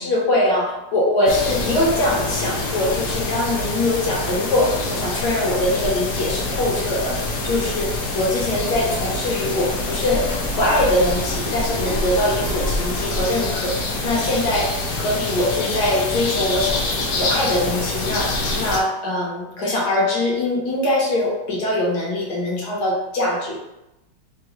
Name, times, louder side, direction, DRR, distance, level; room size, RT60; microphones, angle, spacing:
voice 1, 0.0-23.6, left 1 dB, 65° left, -3 dB, 1.1 m, -22 dB
sound 1, 1.3-18.8, left 2 dB, 85° left, 0.7 m, -25 dB
3.7 x 2.2 x 2.8 m, 0.92 s
omnidirectional pair, 2.2 m